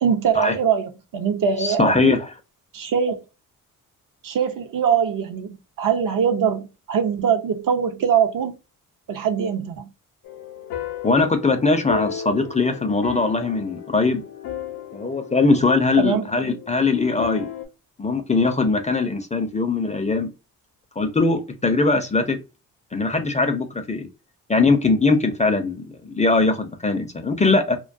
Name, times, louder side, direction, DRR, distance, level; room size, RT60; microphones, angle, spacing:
voice 1, 0.0-2.1 2.7-3.2 4.2-8.6 9.1-9.9 16.0-16.2, right 7 dB, 55° right, 0.6 m, -22 dB
voice 2, 1.6-2.3 11.0-14.2 14.9-17.5 18.0-20.3 21.0-22.4 22.9-24.1 24.5-27.8, left 3 dB, 20° left, 0.4 m, -21 dB
sound 1, 10.2-17.6, left 8 dB, 80° left, 0.6 m, -35 dB
2.3 x 2.2 x 2.5 m
supercardioid pair, 60°, 38 cm